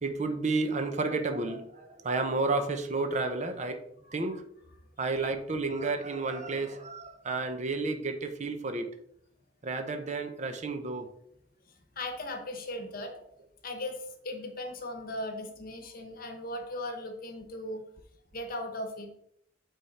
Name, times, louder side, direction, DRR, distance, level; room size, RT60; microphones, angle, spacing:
voice 1, 0.0-3.8 4.1-4.4 5.0-8.9 9.6-11.1, right 3 dB, 40° right, 7 dB, 0.7 m, -31 dB
voice 2, 12.0-13.1 13.6-17.8 18.3-19.1, left 1 dB, 50° left, 5 dB, 1.1 m, -38 dB
8.7 x 3.6 x 4.2 m, 0.74 s
head